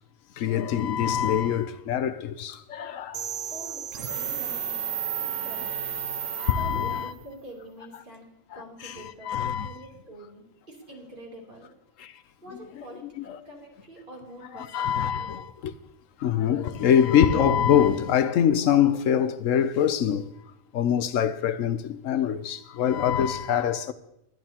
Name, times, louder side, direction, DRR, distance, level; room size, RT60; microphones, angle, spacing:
voice 1, 0.4-3.2 6.4-7.1 8.5-9.8 12.0-12.1 13.0-13.2 14.5-15.7 16.2-20.3 20.7-23.9, left 9 dB, 75° left, 1.0 m, -24 dB
sound 1, 3.1-7.0, right 8 dB, 80° right, 1.2 m, -32 dB
voice 2, 3.5-4.8 5.1-11.7 12.4-15.1, right 1 dB, 40° right, 3.5 m, -45 dB
22.0 x 9.7 x 2.9 m
omnidirectional pair, 1.4 m